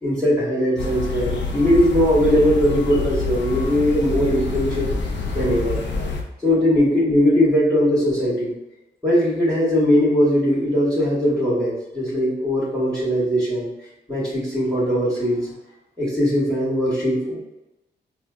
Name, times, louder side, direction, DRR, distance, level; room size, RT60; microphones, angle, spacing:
voice 1, 0.0-4.9 5.3-5.8 6.4-8.5 9.0-13.7 14.1-15.5 16.0-17.4, equal, ahead, -11 dB, 1.3 m, -20 dB
sound 1, 0.8-6.2, left 3 dB, 80° left, 0.6 m, -27 dB
4.2 x 2.2 x 2.5 m, 0.95 s
wide cardioid pair, 125°, 18 cm